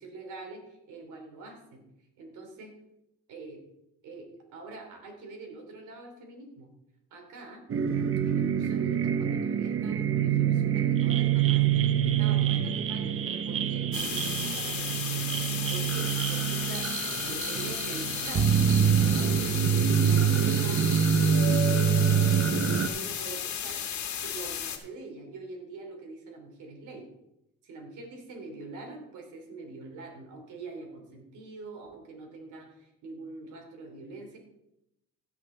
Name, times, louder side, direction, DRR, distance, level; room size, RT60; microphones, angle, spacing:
voice 1, 0.0-1.8 2.2-2.7 3.3-3.6 4.0-6.7 7.1-7.6 8.3-11.6 12.0-14.9 15.7-16.9 17.2-23.8 24.2-27.1 27.6-34.4, right 3 dB, 85° right, 2 dB, 3.2 m, -44 dB
sound 1, 7.7-22.9, right 8 dB, 45° right, 0.8 m, -25 dB
sound 2, 13.9-24.8, left 9 dB, 70° left, 1.6 m, -34 dB
17.0 x 6.1 x 3.9 m, 0.84 s
cardioid pair, 90°, 30 cm